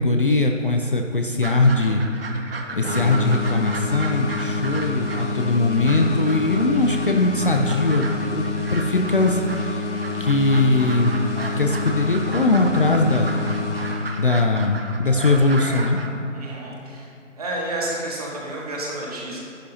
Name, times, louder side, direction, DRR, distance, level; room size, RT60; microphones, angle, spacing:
voice 1, 0.0-2.0 2.7-9.9 10.2-11.1 11.6-13.3 14.2-16.0, left 2 dB, 45° left, 3 dB, 0.6 m, -20 dB
sound 1, 1.4-16.1, right 3 dB, 50° right, 0.9 m, -35 dB
sound 2, 2.8-14.6, left 3 dB, 65° left, 2.0 m, -28 dB
sound 3, 11.3-12.3 15.0-16.7, right 1 dB, 10° right, 1.0 m, -42 dB
voice 2, 16.3-17.1 17.4-19.4, right 1 dB, 30° right, -4 dB, 1.7 m, -30 dB
11.5 x 10.0 x 2.8 m, 2.5 s
figure-of-eight pair, 165°, 39 cm